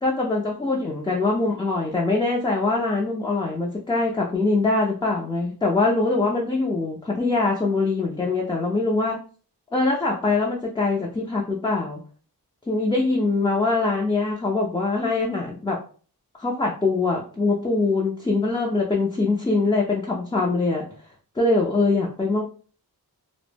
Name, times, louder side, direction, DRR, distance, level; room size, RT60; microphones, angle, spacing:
voice 1, 0.0-9.2 9.7-12.0 12.7-15.8 16.4-20.8 21.4-22.4, left 3 dB, 15° left, -2 dB, 0.4 m, -23 dB
2.0 x 2.0 x 3.2 m, 0.41 s
wide cardioid pair, 90°, 39 cm